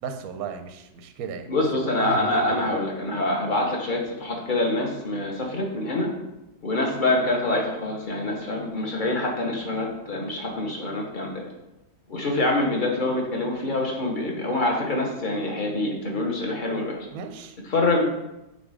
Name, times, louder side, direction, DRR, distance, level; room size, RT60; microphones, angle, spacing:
voice 1, 0.0-1.5 1.8-2.6 17.1-17.6, right 5 dB, 65° right, 6 dB, 1.0 m, -34 dB
voice 2, 1.5-6.1 6.6-11.4 12.1-17.0 17.7-18.0, left 2 dB, 35° left, 0 dB, 1.0 m, -25 dB
8.1 x 2.8 x 4.9 m, 0.93 s
omnidirectional pair, 1.9 m